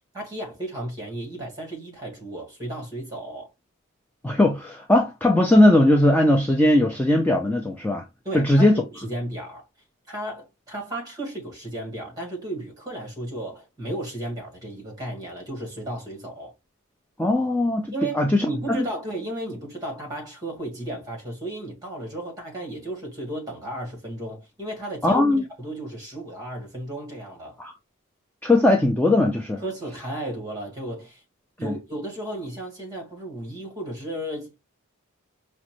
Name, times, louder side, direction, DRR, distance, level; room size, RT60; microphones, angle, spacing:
voice 1, 0.1-3.5 8.2-9.6 10.1-16.5 17.9-25.2 25.6-27.6 29.6-31.2 31.6-34.5, right 1 dB, 15° right, 1.5 m, -34 dB
voice 2, 4.2-8.1 8.3-8.8 17.2-18.9 25.0-25.4 27.6-27.7 28.4-29.6 31.6-31.7, left 1 dB, 5° left, 0.3 m, -19 dB
4.9 x 2.1 x 3.0 m
head